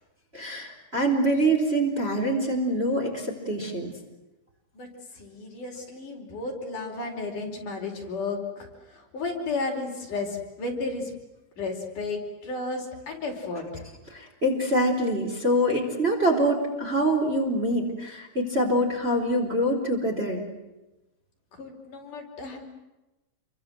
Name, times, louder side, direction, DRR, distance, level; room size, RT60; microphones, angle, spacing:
voice 1, 0.3-3.9 14.1-20.4, right 1 dB, 15° right, 1 dB, 4.0 m, -25 dB
voice 2, 5.1-11.1 11.6-13.9 21.5-22.6, left 3 dB, 55° left, 1 dB, 6.1 m, -33 dB
29.0 x 24.0 x 7.9 m, 1.0 s
omnidirectional pair, 4.4 m